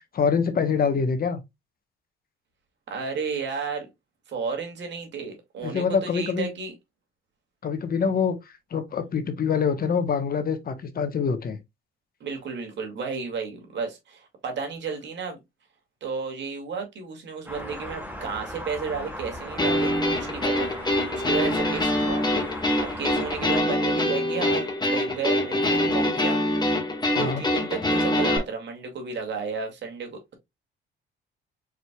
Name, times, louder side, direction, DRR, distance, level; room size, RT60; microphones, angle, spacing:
voice 1, 0.1-1.4 5.6-6.5 7.6-8.4 8.7-11.6 27.1-27.4, left 6 dB, 50° left, 1.1 m, -25 dB
voice 2, 2.9-3.9 4.3-6.7 12.2-15.4 16.0-20.7 21.1-22.2 22.8-26.4 26.7-26.8 27.1-30.3, right 5 dB, 65° right, 2.2 m, -33 dB
sound 1, 17.5-23.6, equal, 10° right, 1.9 m, -37 dB
sound 2, 19.6-28.4, left 1 dB, 20° left, 1.5 m, -24 dB
4.9 x 4.4 x 2.2 m
cardioid pair, 90°, 20 cm